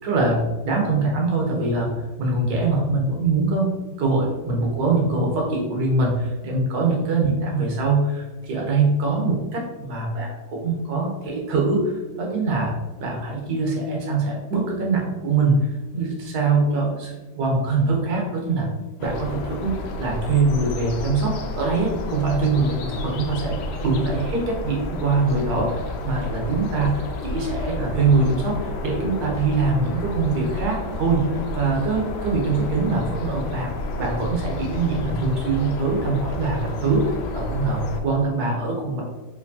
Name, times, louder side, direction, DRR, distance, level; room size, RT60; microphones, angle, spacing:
voice 1, 0.0-1.9 2.2-18.7 19.0-33.7 34.0-39.0, right 3 dB, 70° right, -1 dB, 1.4 m, -23 dB
sound 1, 19.0-38.0, left 1 dB, 85° left, 1.2 m, -31 dB
4.4 x 3.2 x 2.7 m, 1.2 s
omnidirectional pair, 1.8 m